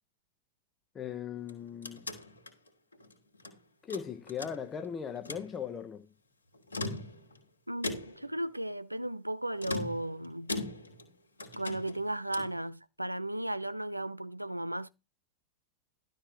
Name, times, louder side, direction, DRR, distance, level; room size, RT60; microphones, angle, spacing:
voice 1, 0.9-2.1 3.8-6.1, left 7 dB, 20° left, 1.1 m, -38 dB
sound 1, 1.4-3.5 3.9-4.9 5.2-5.5 6.5-7.4 7.8-8.3 9.6-11.1 11.4-12.6, left 2 dB, 80° left, 2.7 m, -40 dB
voice 2, 7.7-10.5 11.6-14.9, right 1 dB, 85° right, 0.6 m, -35 dB
12.5 x 4.4 x 6.5 m
figure-of-eight pair, 90°, 0 cm